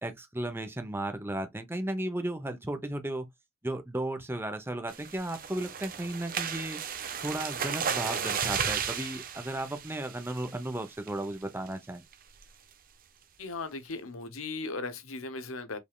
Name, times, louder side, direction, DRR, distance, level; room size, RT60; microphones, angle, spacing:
voice 1, 0.0-3.3 3.6-6.8 7.2-12.0, right 1 dB, 10° right, 0.8 m, -35 dB
sound 1, 4.9-10.7 11.1-11.3 11.7-11.8 12.1-12.4, right 7 dB, 45° right, 0.7 m, -34 dB
voice 2, 13.4-15.8, left 3 dB, 80° left, 0.9 m, -37 dB
5.2 x 3.4 x 2.4 m
head